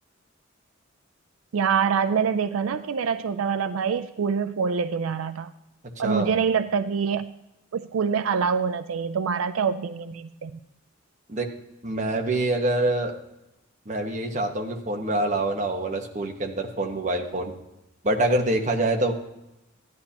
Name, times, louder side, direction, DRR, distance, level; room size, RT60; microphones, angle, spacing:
voice 1, 1.5-5.5 6.0-7.3 7.7-10.6, right 6 dB, 85° right, 12 dB, 0.4 m, -25 dB
voice 2, 6.0-6.3 11.3-11.5 11.8-13.2 13.8-17.5 18.0-19.1, right 1 dB, 35° right, 2 dB, 1.3 m, -25 dB
15.5 x 10.5 x 2.9 m, 0.92 s
head